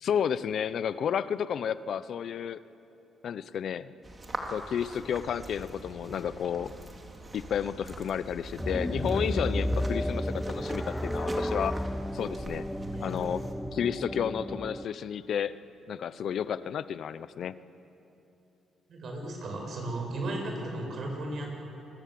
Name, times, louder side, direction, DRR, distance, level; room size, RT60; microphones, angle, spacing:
voice 1, 0.0-2.6 3.2-3.9 4.5-6.7 7.3-11.8 12.1-12.6 13.0-13.4 13.7-15.5 15.9-17.5, left 8 dB, 65° left, 15 dB, 0.7 m, -31 dB
sound 1, 4.0-13.5, right 1 dB, 25° right, 3.1 m, -43 dB
sound 2, 8.6-14.9, left 1 dB, ahead, 0.7 m, -32 dB
voice 2, 12.7-13.4 18.9-21.6, right 1 dB, 60° right, 1 dB, 7.3 m, -36 dB
27.0 x 22.0 x 7.8 m, 2.9 s
cardioid pair, 90°, 0 cm